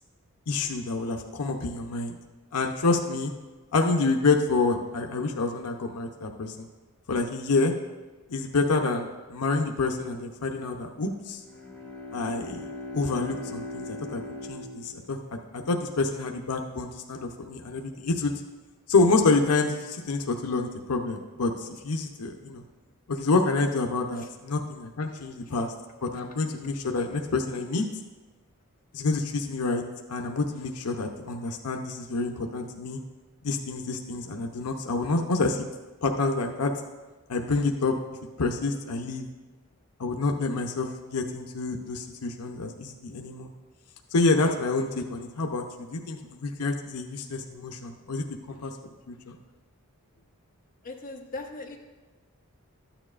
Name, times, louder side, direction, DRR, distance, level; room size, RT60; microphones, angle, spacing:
voice 1, 0.5-2.2 2.5-3.3 3.7-6.7 7.1-7.7 8.3-11.4 12.1-12.7 12.9-14.2 14.5-15.2 15.7-18.3 18.9-22.6 23.1-25.7 26.0-27.8 28.9-29.8 30.1-33.0 33.4-35.7 36.0-36.7 37.3-37.9 38.4-39.3 40.0-43.5 44.1-45.6 45.9-48.7 49.1-49.4, left 3 dB, 90° left, 3 dB, 0.7 m, -27 dB
Bowed string instrument, 11.2-15.6, left 2 dB, 10° left, 1.3 m, -40 dB
voice 2, 50.8-51.8, left 3 dB, 40° left, 0 dB, 1.1 m, -39 dB
13.0 x 9.0 x 2.5 m, 1.3 s
head